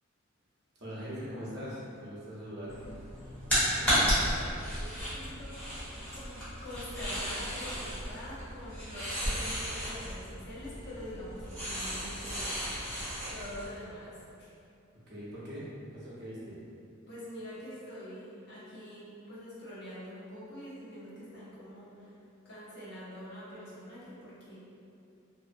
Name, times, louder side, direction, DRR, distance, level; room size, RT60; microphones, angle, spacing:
voice 1, 0.7-2.9 15.1-16.6, equal, 55° right, -9 dB, 0.7 m, -41 dB
sound 1, 2.7-13.7, equal, 5° left, 0.8 m, -33 dB
voice 2, 3.6-5.5 5.9-12.9 13.3-14.5 17.1-22.2 22.4-24.6, equal, 55° left, -9 dB, 0.7 m, -45 dB
2.7 x 2.0 x 2.4 m, 2.6 s
head